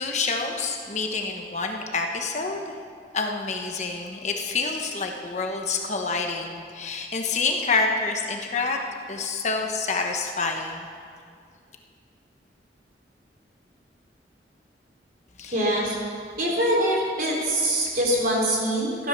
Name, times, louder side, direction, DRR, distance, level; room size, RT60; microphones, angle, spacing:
voice 1, 0.0-2.6 3.1-8.8 9.1-10.9 15.4-15.8, left 4 dB, 40° left, 3 dB, 1.1 m, -27 dB
voice 2, 15.5-15.9 16.4-19.1, right 1 dB, 50° right, -2 dB, 3.6 m, -24 dB
15.0 x 11.5 x 6.1 m, 2.2 s
head